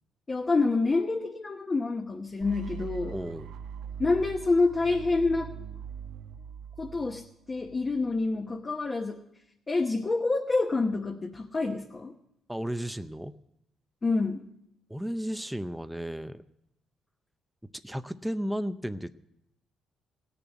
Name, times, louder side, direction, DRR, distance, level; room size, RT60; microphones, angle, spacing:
voice 1, 0.3-3.2 4.0-5.5 6.8-7.2 7.5-9.2 9.7-12.1 14.0-14.4, left 3 dB, 30° left, 2 dB, 1.0 m, -27 dB
sound 1, 2.4-8.3, right 8 dB, 85° right, 0.9 m, -42 dB
voice 2, 3.1-3.5 12.5-13.4 14.9-16.4 17.8-19.1, equal, 5° right, 10 dB, 0.6 m, -34 dB
17.0 x 6.9 x 9.1 m, 0.81 s
cardioid pair, 90°, 0 cm